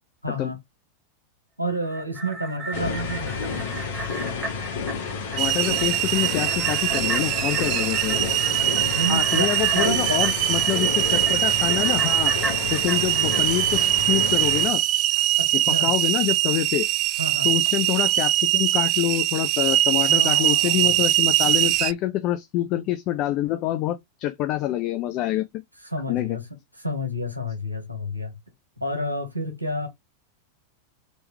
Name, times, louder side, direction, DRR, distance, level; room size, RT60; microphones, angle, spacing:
voice 1, 0.2-0.6 1.6-3.8 8.5-10.3 15.4-15.9 17.2-17.5 20.1-21.0 25.8-26.5 26.8-28.4 28.8-29.9, equal, 85° right, 1.2 m, -30 dB
sound 1, 1.7-14.3 14.7-14.8, right 2 dB, 15° right, 1.4 m, -35 dB
sound 2, 2.7-14.7, left 5 dB, 55° left, 1.1 m, -31 dB
voice 2, 5.3-8.2 9.1-12.3 12.7-14.8 15.7-16.9 17.4-25.4 26.1-26.4, left 14 dB, 40° left, 0.4 m, -26 dB
sound 3, 5.4-21.9, right 15 dB, 40° right, 0.3 m, -22 dB
3.2 x 3.0 x 3.1 m
figure-of-eight pair, 90°, 0 cm